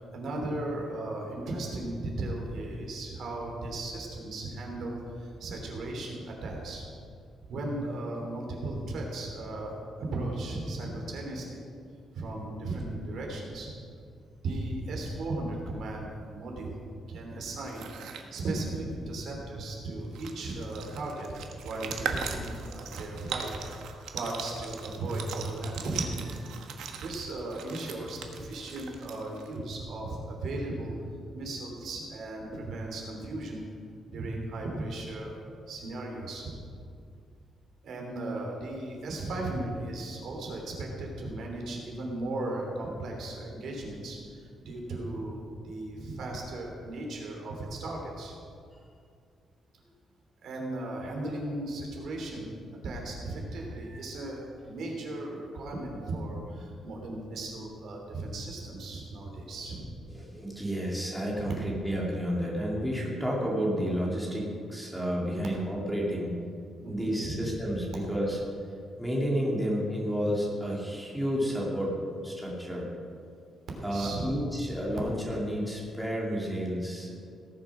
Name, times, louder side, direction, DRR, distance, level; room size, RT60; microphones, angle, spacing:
voice 1, 0.0-6.9 7.5-9.7 10.1-11.6 12.1-13.7 14.4-17.9 18.3-23.5 23.8-26.6 27.0-30.9 31.3-33.6 34.1-35.4 35.7-36.6 37.8-48.3 50.4-52.5 52.8-59.8 61.3-61.5 66.8-67.5 73.7-74.4, right 2 dB, 65° right, 0 dB, 3.1 m, -36 dB
sound 1, 17.6-18.3 19.7-19.8 20.0-29.6, right 7 dB, 85° right, 1.3 m, -40 dB
voice 2, 60.1-66.3 66.9-68.4 69.0-72.0 72.2-72.9 73.8-77.2, equal, ahead, -4 dB, 2.6 m, -31 dB
18.0 x 7.5 x 6.2 m, 2.3 s
cardioid pair, 150°, 0 cm